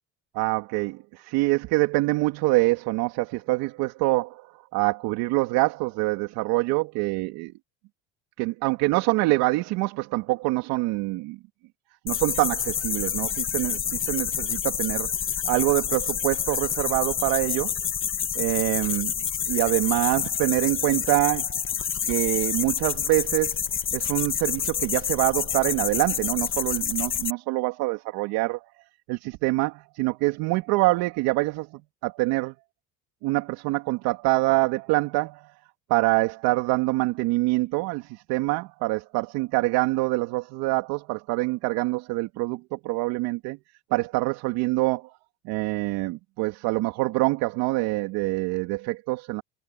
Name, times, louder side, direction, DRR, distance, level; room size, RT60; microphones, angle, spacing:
voice 1, 0.3-4.5 4.7-7.5 8.4-11.4 12.1-15.1 15.5-17.7 18.4-19.1 19.5-21.6 22.0-23.6 23.9-28.6 29.1-32.5 33.2-35.5 35.9-43.6 43.9-45.1 45.5-49.4, right 22 dB, 75° right, 3.6 m, -25 dB
sound 1, 12.1-27.3, left 8 dB, 35° left, 1.6 m, -28 dB
supercardioid pair, 100°, 37 cm